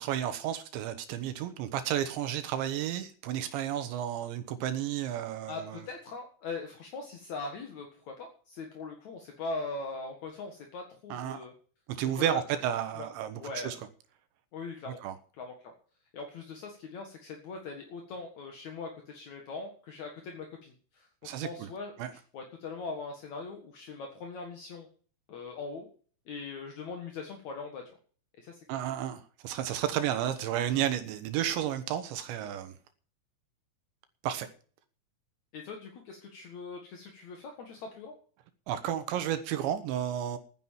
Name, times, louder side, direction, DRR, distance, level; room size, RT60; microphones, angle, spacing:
voice 1, 0.0-5.8 11.1-11.5 11.9-13.8 15.0-15.1 21.2-21.7 22.0-22.1 28.7-32.7 34.2-34.5 38.7-40.4, right 10 dB, 75° right, 3.1 m, -32 dB
voice 2, 5.5-11.5 12.2-12.4 12.9-13.1 13.3-13.8 14.5-15.0 15.4-15.7 16.1-21.1 21.4-24.9 25.3-25.9 26.3-27.8 28.4-28.6 35.5-38.1, left 3 dB, 60° left, 2.0 m, -41 dB
11.0 x 10.0 x 7.4 m
omnidirectional pair, 5.7 m